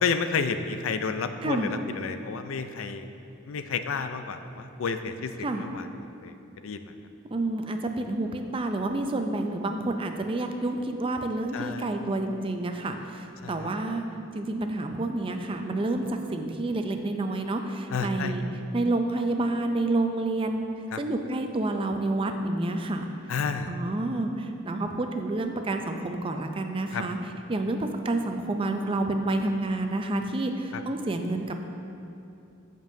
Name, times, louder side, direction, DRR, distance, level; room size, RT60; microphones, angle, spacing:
voice 1, 0.0-3.1 3.5-5.3 5.6-6.3 6.6-6.8 11.5-11.9 13.4-13.7 17.9-18.3 20.9-21.0 23.3-23.7 26.9-27.0 30.7-30.8, left 5 dB, 75° left, 9 dB, 0.4 m, -30 dB
voice 2, 7.3-14.0 14.3-18.5 18.7-20.7 21.0-23.1 23.7-27.2 27.5-31.6, right 2 dB, 25° right, 5 dB, 0.4 m, -29 dB
15.0 x 5.3 x 2.7 m, 2.7 s
head